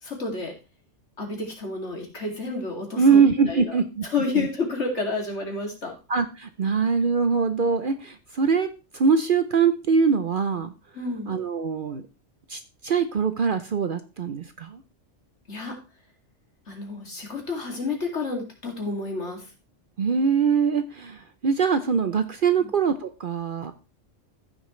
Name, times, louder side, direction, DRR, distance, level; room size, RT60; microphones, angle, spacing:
voice 1, 0.0-0.5 1.2-5.9 10.9-11.3 15.5-15.7 16.7-19.5 22.6-22.7, left 3 dB, 65° left, 1 dB, 2.8 m, -30 dB
voice 2, 3.0-4.0 4.4-4.5 6.1-8.7 8.9-10.7 11.3-12.0 12.5-14.8 20.0-23.7, right 5 dB, 50° right, 10 dB, 0.7 m, -23 dB
14.5 x 6.3 x 3.1 m, 0.30 s
omnidirectional pair, 1.3 m